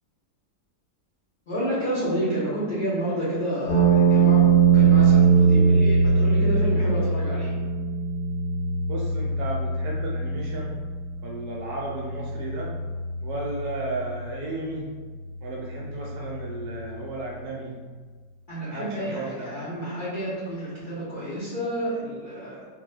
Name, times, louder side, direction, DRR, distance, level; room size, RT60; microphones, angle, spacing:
voice 1, 1.5-7.5 18.5-22.7, right 1 dB, 50° left, -10 dB, 0.6 m, -30 dB
sound 1, 3.7-17.7, right 5 dB, 65° left, 1.0 m, -23 dB
voice 2, 8.9-10.8 11.2-12.7 13.2-14.9 15.4-17.7 18.7-19.5, right 2 dB, 70° right, -2 dB, 1.1 m, -34 dB
3.8 x 2.2 x 3.2 m, 1.5 s
omnidirectional pair, 2.0 m